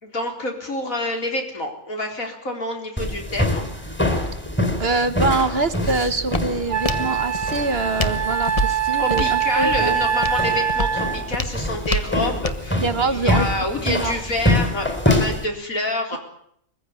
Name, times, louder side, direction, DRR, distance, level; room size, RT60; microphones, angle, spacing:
voice 1, 0.0-3.7 9.0-16.2, left 1 dB, 75° left, 3 dB, 4.4 m, -27 dB
sound 1, 3.0-15.5, left 1 dB, 10° left, 3.7 m, -25 dB
Walk footsteps, 4.6-12.7, left 1 dB, 25° left, 1.2 m, -30 dB
voice 2, 4.8-9.9 12.8-13.4 13.8-14.1, right 3 dB, 50° right, 11 dB, 1.3 m, -24 dB
Wind instrument woodwind instrument, 6.1-6.2 6.7-11.3, right 8 dB, 90° right, 1.8 m, -24 dB
22.5 x 15.5 x 9.6 m, 0.71 s
omnidirectional pair, 1.4 m